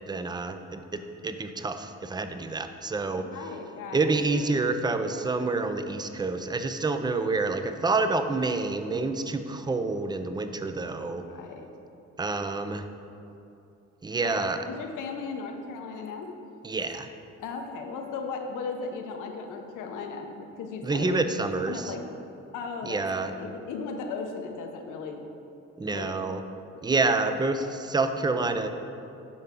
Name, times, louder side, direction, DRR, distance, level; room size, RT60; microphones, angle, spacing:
voice 1, 0.1-3.2 3.9-11.2 12.2-12.8 14.0-14.6 16.6-17.1 20.8-21.9 22.8-23.3 25.8-26.4 26.8-28.7, right 3 dB, 15° right, 8 dB, 0.4 m, -28 dB
voice 2, 3.1-4.1 4.4-4.6 11.0-11.7 14.2-16.3 17.4-21.1 21.7-22.0 22.5-25.2 25.9-26.1 26.7-26.9 27.3-27.4, left 4 dB, 90° left, 4 dB, 0.9 m, -37 dB
9.4 x 5.5 x 3.6 m, 2.7 s
cardioid pair, 90°, 30 cm